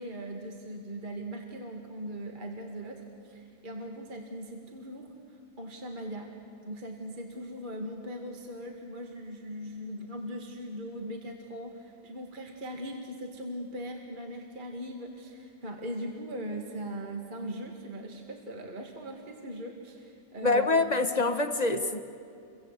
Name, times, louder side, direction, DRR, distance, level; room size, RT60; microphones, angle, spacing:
voice 1, 0.0-6.3 6.6-20.8, equal, 30° right, 1 dB, 2.2 m, -40 dB
voice 2, 20.4-22.0, left 3 dB, 30° left, 8 dB, 1.1 m, -25 dB
29.0 x 24.0 x 8.2 m, 2.5 s
omnidirectional pair, 1.7 m